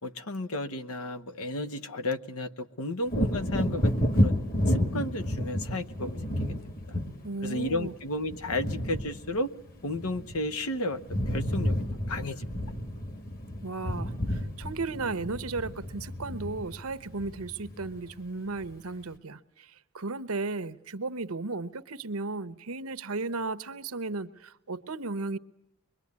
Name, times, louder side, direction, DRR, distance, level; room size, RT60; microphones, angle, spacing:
voice 1, 0.0-4.4 4.7-6.6 6.9-7.0 7.4-9.5 9.8-11.0 11.3-11.8 12.1-12.5, left 1 dB, 85° left, 1.1 m, -33 dB
Wind / Thunder, 3.1-10.7 10.9-18.2 18.6-18.7, equal, 40° left, 1.9 m, -31 dB
voice 2, 7.2-7.9 13.6-25.4, right 3 dB, 85° right, 1.0 m, -35 dB
25.0 x 22.5 x 9.6 m
head